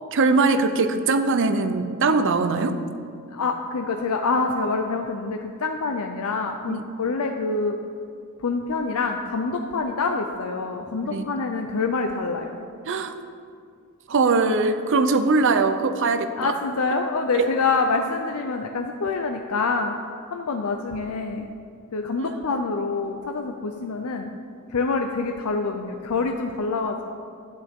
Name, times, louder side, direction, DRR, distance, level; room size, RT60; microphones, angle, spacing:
voice 1, 0.1-2.7 6.7-6.8 11.0-11.2 12.9-13.1 14.1-16.5 17.3-17.5 22.2-22.6, right 3 dB, 60° right, 9 dB, 0.6 m, -21 dB
voice 2, 3.3-7.8 8.4-12.6 16.4-20.0 20.3-21.5 21.9-24.3 24.7-27.0, left 4 dB, 75° left, 4 dB, 0.6 m, -26 dB
11.5 x 9.6 x 3.6 m, 2.3 s
head